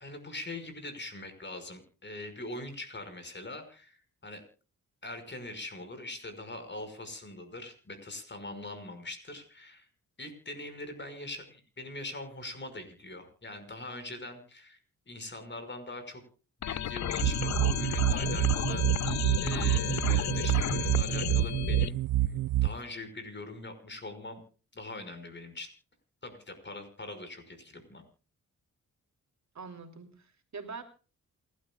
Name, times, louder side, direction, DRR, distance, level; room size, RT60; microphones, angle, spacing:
voice 1, 0.0-4.4 5.0-9.9 10.2-14.8 15.1-16.2 16.6-24.4 24.7-25.7 26.2-28.0, left 2 dB, 35° left, 8 dB, 5.6 m, -42 dB
sound 1, 16.6-21.9, left 10 dB, 55° left, 0.6 m, -33 dB
sound 2, 17.2-22.7, right 15 dB, 80° right, 0.6 m, -28 dB
voice 2, 29.5-30.8, right 5 dB, 55° right, 5 dB, 3.1 m, -43 dB
28.0 x 12.5 x 2.4 m, 0.37 s
cardioid pair, 70°, 33 cm